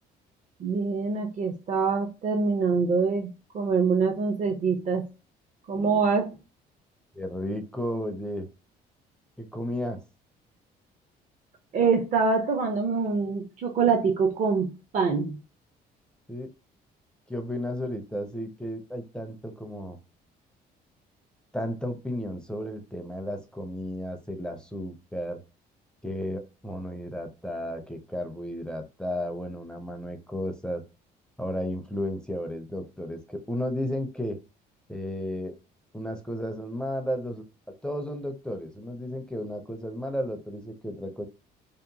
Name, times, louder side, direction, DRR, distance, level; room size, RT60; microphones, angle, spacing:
voice 1, 0.6-3.3 3.5-5.1 5.7-6.4 11.7-15.4, right 5 dB, 45° right, 0.5 m, -25 dB
voice 2, 7.1-8.5 9.4-10.0 16.3-16.5 17.3-20.0 21.5-25.4 26.0-30.8 31.4-34.4 34.9-35.5 35.9-37.4 37.8-41.3, equal, 5° left, 0.4 m, -33 dB
2.8 x 2.0 x 2.6 m
cardioid pair, 110°, 17 cm